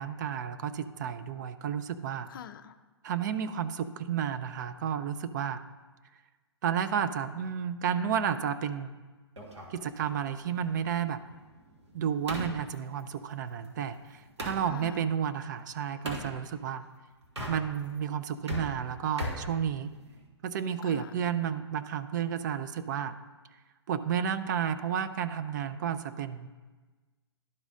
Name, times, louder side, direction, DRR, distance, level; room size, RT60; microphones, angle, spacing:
voice 1, 0.0-2.3 3.0-5.6 6.6-8.9 9.7-11.2 11.9-16.8 17.5-19.9 20.4-23.2 23.9-26.5, right 8 dB, 45° right, 11 dB, 0.4 m, -32 dB
voice 2, 2.3-2.8 14.7-15.1 20.8-21.1, left 9 dB, 50° left, 11 dB, 0.4 m, -44 dB
sound 1, 9.4-14.7 16.0-16.3 17.2-18.0 18.3-20.3, equal, 85° right, 1.6 m, -40 dB
11.5 x 4.0 x 3.7 m, 1.3 s
figure-of-eight pair, 125°, 14 cm